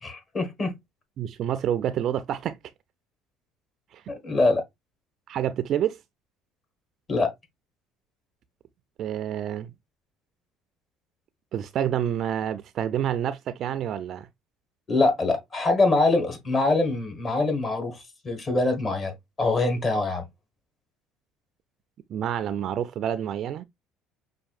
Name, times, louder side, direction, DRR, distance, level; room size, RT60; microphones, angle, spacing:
voice 1, 0.0-0.7 4.1-4.6 7.1-7.3 14.9-18.0 18.2-20.2, left 2 dB, 30° left, 1.7 m, -24 dB
voice 2, 1.2-2.6 3.9-4.1 5.3-6.0 9.0-9.7 11.5-14.3 22.1-23.6, right 10 dB, 55° right, 0.4 m, -28 dB
5.8 x 2.6 x 2.4 m
cardioid pair, 105°, 0 cm